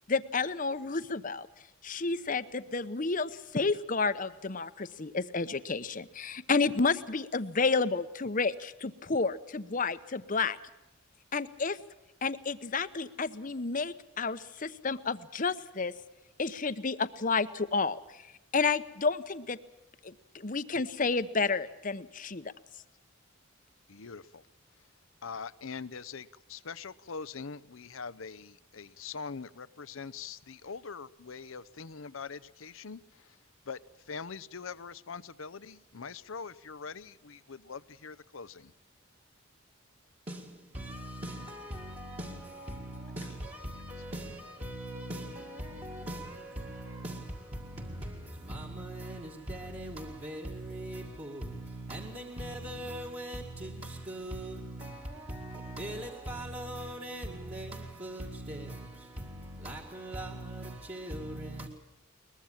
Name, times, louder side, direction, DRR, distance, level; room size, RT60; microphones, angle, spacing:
voice 1, 0.1-1.5 1.8-10.6 11.3-11.8 12.2-15.9 16.4-18.0 18.5-19.6 20.0-22.4, left 4 dB, 40° left, 0.9 m, -30 dB
voice 2, 23.9-24.4 25.2-33.4 33.7-33.8 34.1-38.7, left 5 dB, 80° left, 0.8 m, -43 dB
voice 3, 40.3-61.7, right 1 dB, 30° right, 2.0 m, -40 dB
22.5 x 21.0 x 7.3 m
head